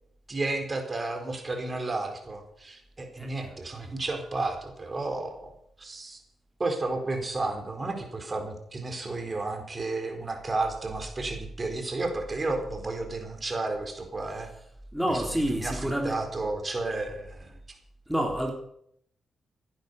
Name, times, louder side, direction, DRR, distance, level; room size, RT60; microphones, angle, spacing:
voice 1, 0.3-5.5 5.8-6.2 6.6-14.5 15.1-15.2 15.5-17.5, right 2 dB, 35° right, 4 dB, 4.2 m, -32 dB
voice 2, 14.9-16.1 18.1-18.5, equal, ahead, 1 dB, 3.3 m, -28 dB
16.0 x 10.5 x 6.8 m, 0.73 s
cardioid pair, 60°, 0 cm